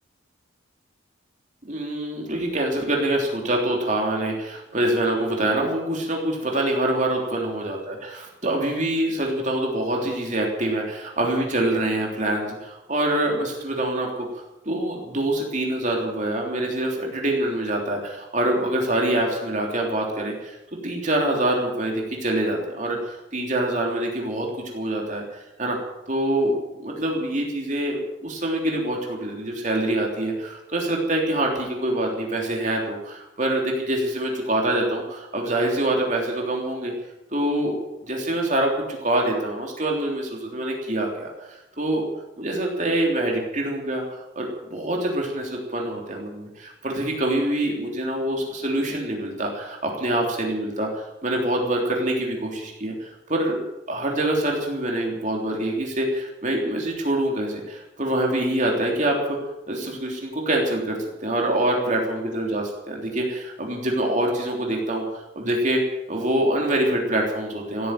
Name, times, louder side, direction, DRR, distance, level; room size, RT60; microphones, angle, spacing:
voice 1, 1.6-14.1 14.3-24.5 24.7-25.8 26.1-26.6 26.8-36.9 37.3-37.8 38.1-42.0 42.4-53.6 53.9-59.4 59.7-65.8 66.1-67.9, right 1 dB, 40° right, 0 dB, 3.3 m, -25 dB
16.0 x 9.6 x 9.1 m, 0.92 s
head